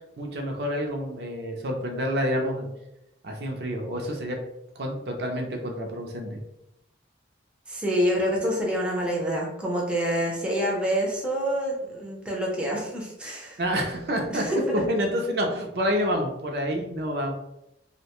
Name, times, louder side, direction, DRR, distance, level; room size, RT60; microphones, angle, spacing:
voice 1, 0.2-2.7 3.2-4.4 4.8-6.4 13.6-14.5 14.7-17.3, equal, 60° right, 2 dB, 0.5 m, -28 dB
voice 2, 7.7-13.6 14.3-14.8, equal, 5° right, -3 dB, 0.5 m, -27 dB
2.7 x 2.1 x 2.9 m, 0.86 s
head